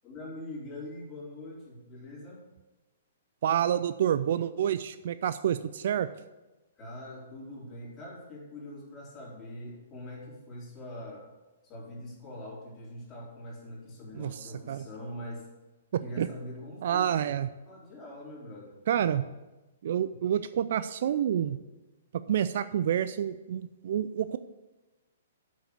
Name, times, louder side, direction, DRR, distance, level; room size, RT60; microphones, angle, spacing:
voice 1, 0.0-2.4 6.8-11.3 11.6-15.5 16.0-17.2 17.7-18.8, left 1 dB, 20° left, -6 dB, 4.0 m, -43 dB
voice 2, 3.4-6.1 14.1-14.8 15.9-16.3 16.8-17.5 18.9-19.2 19.8-21.6 22.3-24.4, right 9 dB, 55° right, 14 dB, 0.4 m, -28 dB
8.0 x 6.6 x 6.7 m, 1.1 s
figure-of-eight pair, 120°, 0 cm